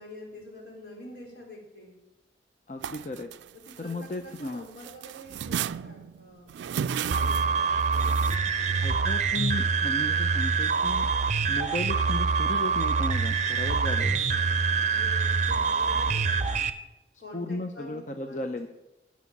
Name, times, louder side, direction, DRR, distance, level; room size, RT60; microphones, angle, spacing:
voice 1, 0.0-2.0 3.5-6.5 6.9-9.1 13.8-16.5 17.2-18.7, left 1 dB, 70° left, -3 dB, 4.3 m, -48 dB
voice 2, 2.7-3.3 3.8-4.6 8.8-11.1 11.5-14.2 17.3-18.7, left 2 dB, 45° left, 6 dB, 0.6 m, -35 dB
sound 1, 2.8-4.5 4.8-8.4, right 8 dB, 85° right, 0.3 m, -34 dB
sound 2, 7.1-16.7, right 5 dB, 40° right, 0.6 m, -25 dB
11.0 x 6.2 x 8.5 m, 1.0 s
head